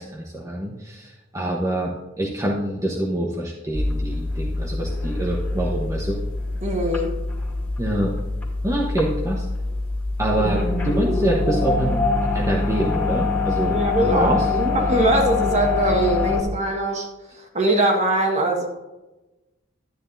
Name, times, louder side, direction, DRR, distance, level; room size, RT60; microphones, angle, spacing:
voice 1, 0.0-6.2 7.8-8.1 8.6-9.5 10.2-12.1 12.3-14.5, right 1 dB, 15° right, -4 dB, 1.1 m, -25 dB
sound 1, 3.7-16.4, left 3 dB, 10° left, 2.3 m, -24 dB
voice 2, 6.6-7.1 13.7-17.1 17.4-18.7, right 1 dB, 35° right, 1 dB, 1.6 m, -21 dB
12.0 x 9.5 x 2.7 m, 1.0 s
head